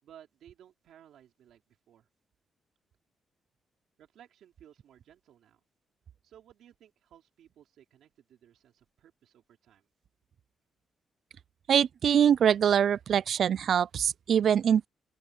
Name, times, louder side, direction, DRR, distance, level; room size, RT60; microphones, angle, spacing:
voice 1, 0.0-2.1 4.0-5.6 6.2-9.9, right 10 dB, 90° right, 3.5 m, -57 dB
voice 2, 11.7-14.9, right 8 dB, 50° right, 0.3 m, -24 dB
open air
wide cardioid pair, 175°, 0 cm